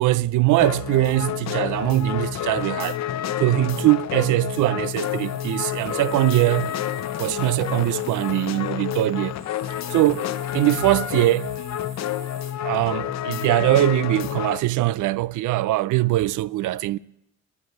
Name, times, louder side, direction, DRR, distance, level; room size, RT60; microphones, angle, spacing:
voice 1, 0.0-3.0 3.4-6.7 7.2-9.3 9.9-11.5 12.6-17.0, right 16 dB, 80° right, 0.5 m, -22 dB
sound 1, 0.6-14.6, left 11 dB, 60° left, 0.7 m, -29 dB
sound 2, 4.8-12.5, right 3 dB, 35° right, 4.0 m, -47 dB
14.0 x 9.4 x 8.2 m
cardioid pair, 90°, 30 cm